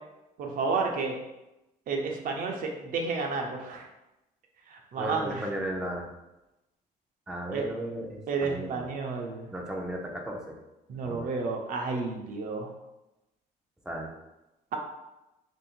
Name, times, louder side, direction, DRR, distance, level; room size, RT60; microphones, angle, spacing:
voice 1, 0.4-1.2 1.9-3.8 4.7-5.4 7.5-7.7 8.3-9.5 10.9-12.7, right 4 dB, 55° right, 1 dB, 0.6 m, -31 dB
voice 2, 5.0-6.1 7.3-8.9 9.5-10.6 11.0-11.3 13.8-14.1, equal, 5° right, -1 dB, 0.6 m, -35 dB
2.9 x 2.6 x 4.4 m, 0.96 s
cardioid pair, 110°, 17 cm